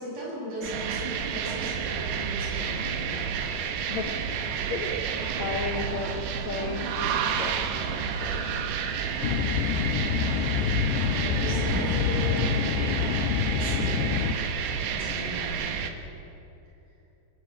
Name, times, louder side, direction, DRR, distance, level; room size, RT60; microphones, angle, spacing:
voice 1, 0.0-3.3 11.1-13.2 13.5-14.3 14.9-15.8, equal, 35° right, -5 dB, 8.1 m, -38 dB
sound 1, 0.6-15.9, right 7 dB, 80° right, 3.5 m, -30 dB
voice 2, 4.7-8.6, left 5 dB, 65° left, 3 dB, 1.7 m, -35 dB
sound 2, 9.2-14.3, left 8 dB, 85° left, 2.8 m, -27 dB
27.0 x 13.0 x 8.5 m, 2.8 s
omnidirectional pair, 5.1 m